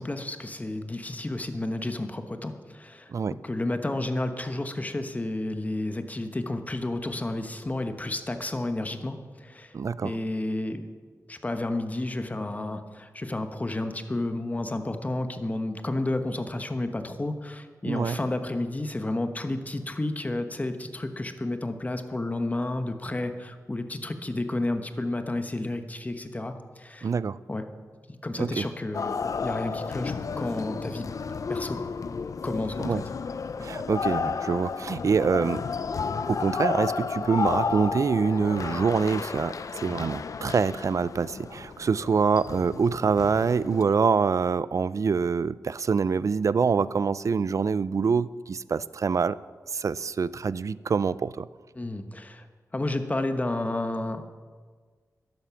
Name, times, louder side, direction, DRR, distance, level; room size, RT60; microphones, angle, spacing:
voice 1, 0.0-3.1 3.4-9.7 10.0-10.9 11.3-27.1 27.5-27.6 28.2-31.1 31.5-31.8 32.4-32.9 33.6-33.7 51.7-52.5 52.7-54.2, left 2 dB, 25° left, 7 dB, 1.1 m, -31 dB
voice 2, 9.7-10.2 17.8-18.2 27.0-27.4 28.4-28.6 32.8-33.0 33.6-35.6 36.3-49.4 49.7-51.5, right 5 dB, 60° right, 18 dB, 0.4 m, -25 dB
sound 1, 28.9-43.8, left 5 dB, 65° left, 0.5 m, -32 dB
12.0 x 10.5 x 7.0 m, 1.5 s
wide cardioid pair, 80°, 6 cm